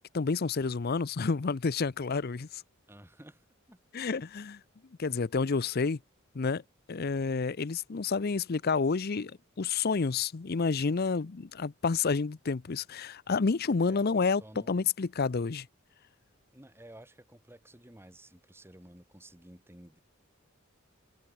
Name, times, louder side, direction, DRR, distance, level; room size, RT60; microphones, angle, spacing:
voice 1, 0.1-2.6 3.9-4.6 5.0-6.0 6.3-6.6 6.9-14.4 14.7-15.7, left 4 dB, 45° left, 0.6 m, -29 dB
voice 2, 2.9-3.8 13.8-14.8 16.5-20.0, right 1 dB, 10° right, 2.6 m, -53 dB
head